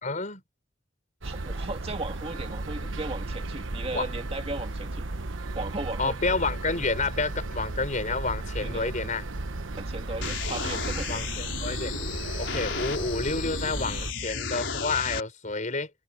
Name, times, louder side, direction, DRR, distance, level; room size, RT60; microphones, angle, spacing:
voice 1, 0.0-0.4 3.9-4.1 6.0-9.2 10.6-10.8 11.1-11.9 12.4-15.9, left 3 dB, 40° left, 4.5 m, -29 dB
voice 2, 1.2-5.0 5.6-6.2 8.6-8.9 9.7-11.2, right 2 dB, 30° right, 2.0 m, -36 dB
sound 1, 1.2-14.1, right 2 dB, 80° right, 1.1 m, -35 dB
sound 2, 10.2-15.2, left 5 dB, 70° left, 5.2 m, -33 dB
head